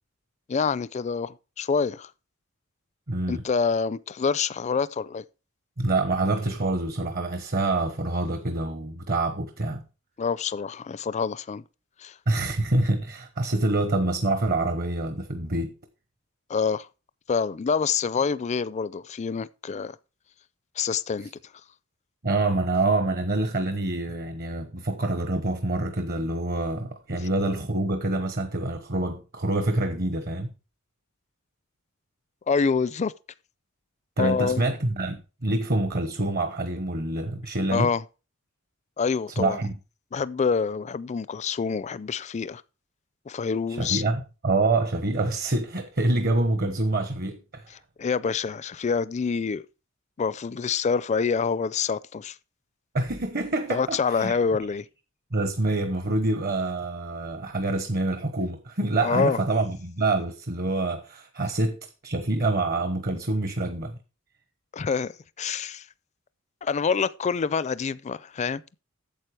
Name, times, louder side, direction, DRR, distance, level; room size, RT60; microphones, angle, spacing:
voice 1, 0.5-2.1 3.3-5.2 10.2-11.6 12.0-12.2 16.5-16.9 17.3-20.0 20.8-21.3 32.5-33.1 34.2-34.6 37.7-38.0 39.0-39.6 40.1-42.6 43.3-44.0 48.0-49.6 50.2-52.4 53.7-54.9 59.0-59.4 64.7-65.1 65.4-65.9 66.6-68.6, left 5 dB, 35° left, 0.4 m, -26 dB
voice 2, 3.1-3.4 5.8-9.8 12.3-15.7 22.2-30.5 34.2-37.9 39.4-39.7 43.7-47.7 52.9-54.4 55.3-64.0, right 2 dB, 50° right, 1.0 m, -26 dB
9.0 x 7.4 x 4.8 m
head